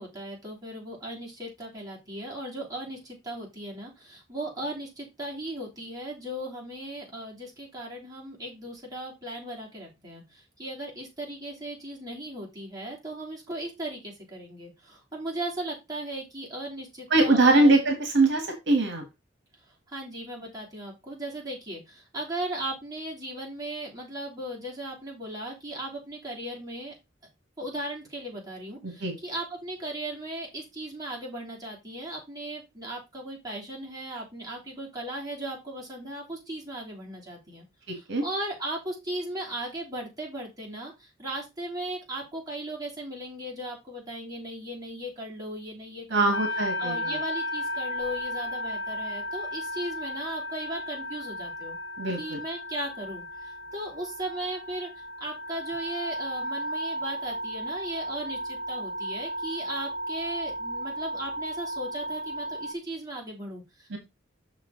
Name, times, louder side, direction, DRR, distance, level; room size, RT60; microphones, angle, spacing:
voice 1, 0.0-17.8 19.9-26.9 27.6-37.6 37.9-46.4 46.8-51.8 52.2-64.0, right 1 dB, 20° right, -3 dB, 3.2 m, -37 dB
voice 2, 17.1-19.0 28.8-29.2 37.9-38.2 46.1-47.2 52.0-52.4 63.9-64.0, right 2 dB, 65° right, 4 dB, 1.7 m, -23 dB
sound 1, 46.3-62.7, equal, 80° left, 1.1 m, -34 dB
6.4 x 6.0 x 3.9 m, 0.23 s
head